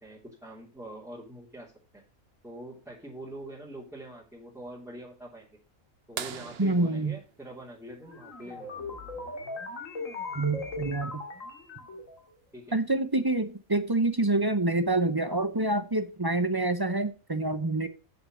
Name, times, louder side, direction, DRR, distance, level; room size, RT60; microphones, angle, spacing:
voice 1, 0.0-2.0 2.4-5.6 6.1-8.9 12.5-12.8, right 1 dB, ahead, -5 dB, 3.0 m, -44 dB
sound 1, 6.2-8.6 10.5-10.6 12.9-13.0 14.7-15.0 15.7-15.8, right 8 dB, 50° right, 0.8 m, -41 dB
voice 2, 6.6-7.1 10.3-11.2 12.7-17.9, right 2 dB, 25° right, 10 dB, 0.6 m, -27 dB
sound 2, 8.0-12.2, left 2 dB, 65° left, 2.4 m, -38 dB
8.0 x 6.8 x 6.2 m, 0.33 s
omnidirectional pair, 1.5 m